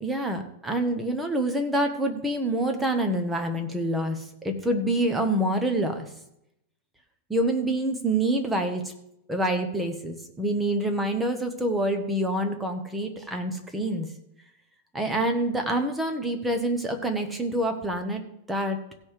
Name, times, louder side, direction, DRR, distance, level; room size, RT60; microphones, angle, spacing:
voice 1, 0.0-6.1 7.3-8.9 9.3-14.1 14.9-18.2 18.5-18.8, right 1 dB, 5° right, 4 dB, 1.1 m, -26 dB
16.0 x 5.5 x 4.8 m, 0.80 s
supercardioid pair, 160°, 0 cm